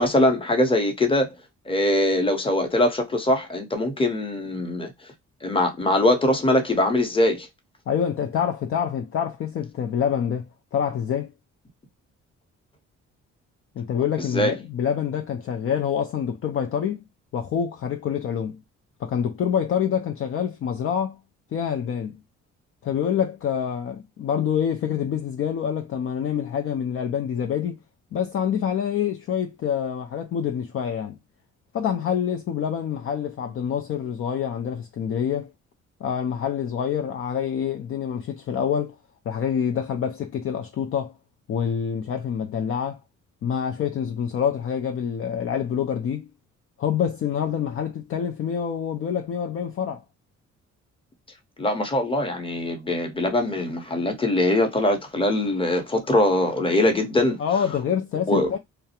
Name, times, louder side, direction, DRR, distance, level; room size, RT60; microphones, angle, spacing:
voice 1, 0.0-1.3 1.7-4.9 5.4-7.5 14.3-14.6 51.6-57.4 58.3-58.5, left 1 dB, 20° left, 0.8 m, -22 dB
voice 2, 7.9-11.3 13.8-17.0 17.3-18.6 19.0-21.2 21.5-22.2 22.8-27.8 28.1-31.2 31.7-35.5 36.0-39.0 39.3-41.1 41.5-43.0 43.4-46.3 46.8-50.0 57.4-58.6, left 8 dB, 45° left, 0.4 m, -26 dB
2.3 x 2.0 x 2.7 m
cardioid pair, 90°, 30 cm